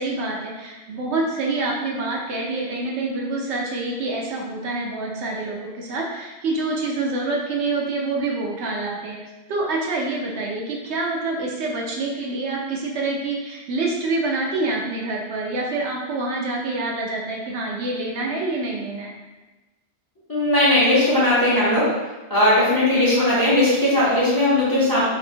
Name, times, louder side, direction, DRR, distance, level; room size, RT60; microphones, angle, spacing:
voice 1, 0.0-9.2 9.5-19.1 23.1-23.3, right 2 dB, 70° right, -2 dB, 0.8 m, -26 dB
voice 2, 20.3-21.9 22.3-25.0, left 1 dB, 20° left, -9 dB, 0.6 m, -18 dB
2.8 x 2.6 x 2.6 m, 1.2 s
omnidirectional pair, 1.2 m